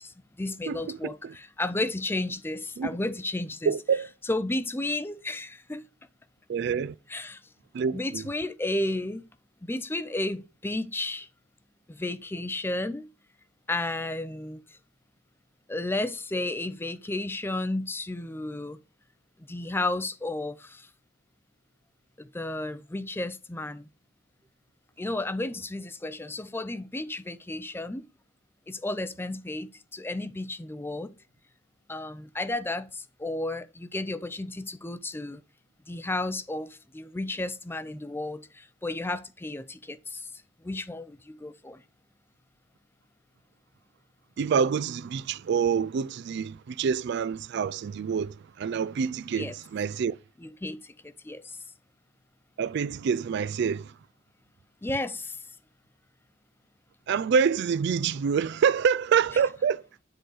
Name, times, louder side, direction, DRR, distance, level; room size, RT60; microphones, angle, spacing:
voice 1, 0.0-3.7 4.2-5.8 7.1-7.4 7.9-9.2 9.6-11.3 11.9-13.1 13.7-14.8 15.7-18.8 19.5-20.9 22.2-23.9 25.0-28.1 28.7-31.1 31.9-35.4 35.9-40.3 40.6-41.8 49.3-49.6 50.4-51.6 54.8-55.4, left 2 dB, 10° left, 0.5 m, -33 dB
voice 2, 0.7-1.3 2.8-3.0 3.7-4.1 6.5-6.9 7.7-8.2 44.4-50.2 52.6-53.9 57.1-59.8, right 6 dB, 55° right, 0.3 m, -26 dB
10.0 x 3.9 x 6.5 m
head